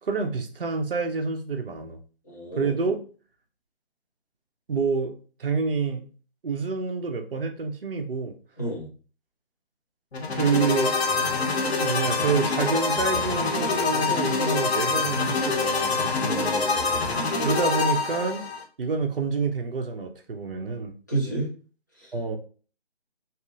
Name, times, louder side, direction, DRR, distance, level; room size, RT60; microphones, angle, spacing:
voice 1, 0.0-2.0 2.6-3.0 4.7-5.1 5.4-6.0 6.4-8.3 10.3-11.0 11.5-16.7 17.4-18.5 18.8-20.9 22.1-22.4, right 5 dB, 55° right, 5 dB, 0.6 m, -28 dB
voice 2, 2.3-2.7 8.6-8.9 16.2-16.9 21.1-21.5 22.0-22.1, right 2 dB, 15° left, -7 dB, 0.6 m, -31 dB
sound 1, 10.1-18.6, left 4 dB, 70° left, 0.9 m, -25 dB
2.8 x 2.4 x 2.4 m, 0.38 s
figure-of-eight pair, 160°, 33 cm